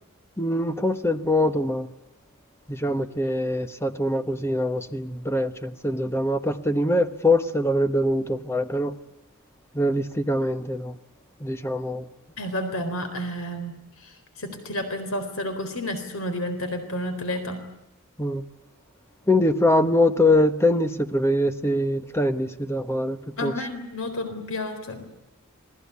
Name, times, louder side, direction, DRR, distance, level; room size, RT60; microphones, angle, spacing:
voice 1, 0.4-1.9 2.7-8.9 9.7-11.0 11.4-12.1 18.2-18.4 19.3-23.5, left 1 dB, 10° left, 1.3 m, -23 dB
voice 2, 12.4-17.7 23.4-25.1, left 1 dB, 70° left, 4.0 m, -31 dB
27.5 x 20.0 x 8.4 m
head